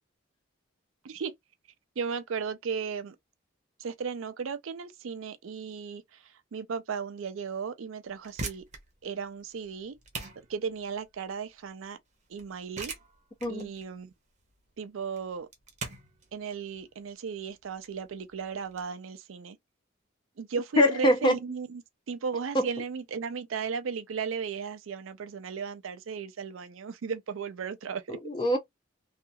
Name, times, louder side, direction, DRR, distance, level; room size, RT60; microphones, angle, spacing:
voice 1, 2.0-3.2 3.8-8.6 9.0-10.0 10.5-12.0 12.3-12.9 13.5-14.1 14.8-15.5 16.3-19.6 20.4-21.8 22.1-28.2, right 6 dB, 75° right, 0.4 m, -35 dB
sound 1, 8.1-18.8, right 3 dB, 35° right, 0.7 m, -43 dB
voice 2, 20.8-21.4 22.5-22.7 28.1-28.6, equal, 25° left, 0.5 m, -23 dB
2.8 x 2.4 x 2.2 m
head